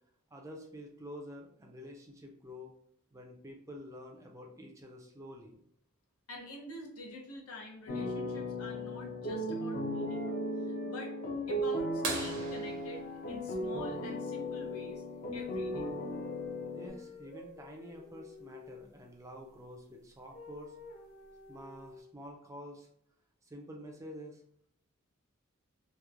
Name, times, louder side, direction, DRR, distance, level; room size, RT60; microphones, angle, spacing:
voice 1, 0.3-2.7 3.1-5.6 16.7-20.8 21.5-22.9 23.4-24.4, equal, 15° right, 1 dB, 0.3 m, -48 dB
voice 2, 6.3-10.3 10.6-11.1 11.5-15.0 15.3-15.9, left 1 dB, 85° left, 0 dB, 0.7 m, -46 dB
sound 1, 7.9-16.9, equal, 45° left, 0.5 m, -36 dB
sound 2, 10.1-11.3 11.7-12.1 12.4-14.2 15.4-18.8 20.3-22.1, left 2 dB, 65° left, 1.2 m, -52 dB
sound 3, 12.0-14.5 16.4-16.5 18.7-18.8 20.5-20.8 21.6-21.7, right 4 dB, 75° right, 0.7 m, -40 dB
2.9 x 2.0 x 2.3 m, 0.70 s
head